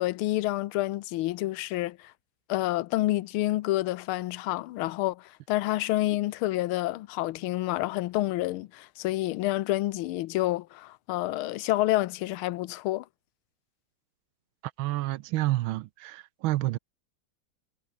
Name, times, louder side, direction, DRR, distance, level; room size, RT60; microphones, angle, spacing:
voice 1, 0.0-2.1 2.5-13.0, left 17 dB, 85° left, 1.5 m, -28 dB
voice 2, 14.8-16.8, right 16 dB, 80° right, 1.4 m, -29 dB
omnidirectional pair, 2.3 m